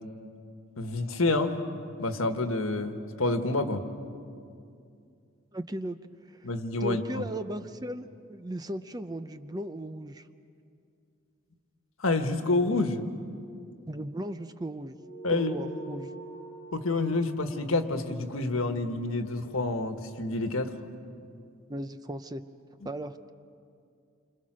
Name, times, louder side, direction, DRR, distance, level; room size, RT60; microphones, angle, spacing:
voice 1, 0.8-1.6 2.0-3.8 6.4-7.3 12.0-13.0 15.2-15.6 16.7-20.7, left 2 dB, 85° left, 7 dB, 1.5 m, -28 dB
voice 2, 5.5-6.0 6.3-6.5 6.8-10.3 13.9-15.0 15.3-16.1 21.7-22.4 22.8-23.3, right 1 dB, 20° right, 10 dB, 0.6 m, -36 dB
sound 1, 14.9-19.7, right 3 dB, 15° left, 7.9 m, -46 dB
28.5 x 25.5 x 6.3 m, 2.4 s
head